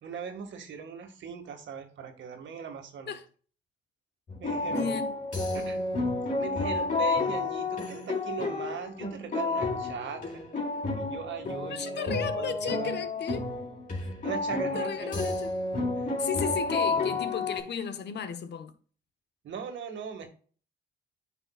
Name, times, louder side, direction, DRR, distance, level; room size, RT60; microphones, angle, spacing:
voice 1, 0.0-3.2 4.4-5.0 5.5-5.8 6.4-10.4 10.9-12.9 14.0-15.4 16.0-16.2 19.4-20.3, right 6 dB, 70° right, 1.9 m, -39 dB
sound 1, 4.3-17.6, left 3 dB, 40° left, 3.9 m, -31 dB
voice 2, 4.7-5.2 11.7-13.5 14.7-15.5 16.2-18.7, left 7 dB, 60° left, 1.1 m, -34 dB
10.0 x 5.5 x 2.4 m
cardioid pair, 90°, 20 cm